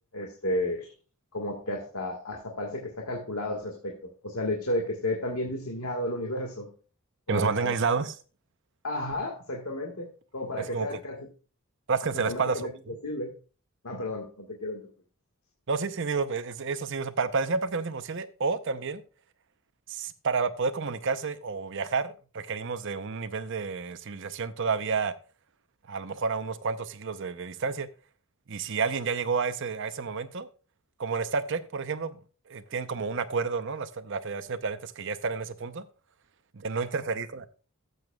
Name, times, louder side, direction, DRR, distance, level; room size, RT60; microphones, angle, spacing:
voice 1, 0.1-0.9 1.3-4.0 4.2-6.7 7.3-7.8 8.8-10.1 10.3-11.3 12.1-12.7 13.0-13.3 13.8-14.8, left 1 dB, 80° left, 1.7 m, -32 dB
voice 2, 7.3-8.2 10.7-11.0 11.9-13.0 15.7-19.0 19.9-25.1 25.9-27.9 28.5-30.5 31.0-32.2 32.5-35.8 36.5-37.5, right 4 dB, 60° right, 0.7 m, -30 dB
13.5 x 7.9 x 2.3 m
head